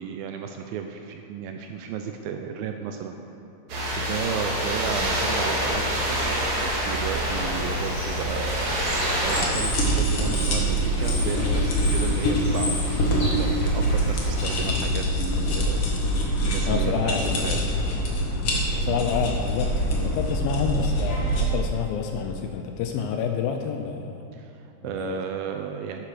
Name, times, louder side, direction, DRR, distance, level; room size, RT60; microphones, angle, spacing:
voice 1, 0.0-3.2 3.8-6.2 6.6-12.7 13.1-15.8 16.4-17.6 24.3-26.0, right 8 dB, 85° right, 5 dB, 2.2 m, -34 dB
sound 1, 3.7-9.4, equal, 50° right, 3.0 m, -26 dB
Bird / Water, 7.3-14.7, left 1 dB, 30° left, 2.4 m, -35 dB
sound 2, 9.3-21.4, equal, 50° left, 1.7 m, -24 dB
voice 2, 16.7-17.3 18.8-24.2 24.8-25.2, left 6 dB, 80° left, 5 dB, 2.2 m, -28 dB
11.5 x 9.8 x 5.0 m, 2.8 s
omnidirectional pair, 4.6 m